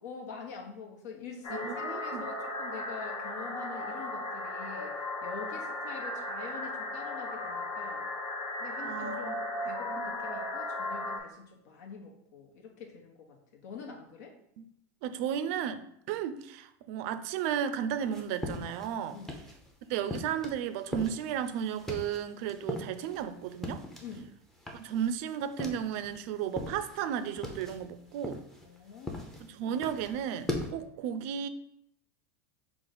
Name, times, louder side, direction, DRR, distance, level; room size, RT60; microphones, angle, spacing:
voice 1, 0.0-8.0 8.6-14.3 19.1-19.4 24.0-24.3 28.6-29.3, left 5 dB, 80° left, 1 dB, 1.1 m, -45 dB
sound 1, 1.4-11.2, left 2 dB, 35° left, 0.9 m, -36 dB
voice 2, 1.6-2.3 8.8-9.4 9.9-10.1 14.6-14.7 15.0-19.2 19.9-23.8 24.7-28.4 29.4-31.5, right 9 dB, 55° right, 11 dB, 0.4 m, -34 dB
sound 2, 18.0-19.7 20.1-24.3 24.6-26.2 26.5-30.7, left 1 dB, 5° left, 0.6 m, -40 dB
5.0 x 2.4 x 4.1 m, 0.73 s
supercardioid pair, 145°, 9 cm